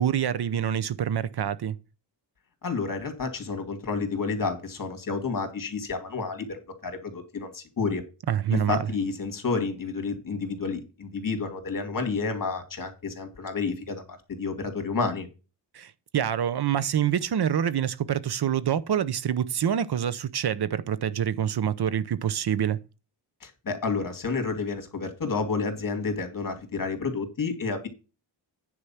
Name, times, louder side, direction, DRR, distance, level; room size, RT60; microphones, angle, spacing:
voice 1, 0.0-1.8 8.3-8.8 15.7-22.8, right 9 dB, 60° right, 0.7 m, -26 dB
voice 2, 2.6-8.0 8.5-15.3 23.4-27.9, left 4 dB, 45° left, 2.5 m, -30 dB
9.9 x 4.8 x 5.7 m
wide cardioid pair, 160°, 44 cm